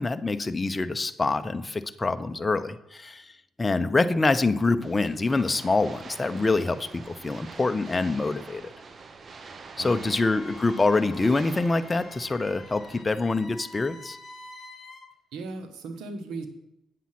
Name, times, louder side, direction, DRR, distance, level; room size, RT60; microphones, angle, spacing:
voice 1, 0.0-3.3 3.6-8.7 9.8-14.2, left 3 dB, 20° left, 10 dB, 0.6 m, -25 dB
sound 1, 4.8-13.0, right 4 dB, 40° right, 0.8 m, -45 dB
Wind instrument woodwind instrument, 9.8-15.1, left 3 dB, 45° left, 1.4 m, -48 dB
voice 2, 9.8-10.1 15.3-16.5, right 3 dB, 85° right, 7 dB, 1.3 m, -37 dB
8.3 x 7.5 x 5.9 m, 0.89 s
cardioid pair, 90°, 0 cm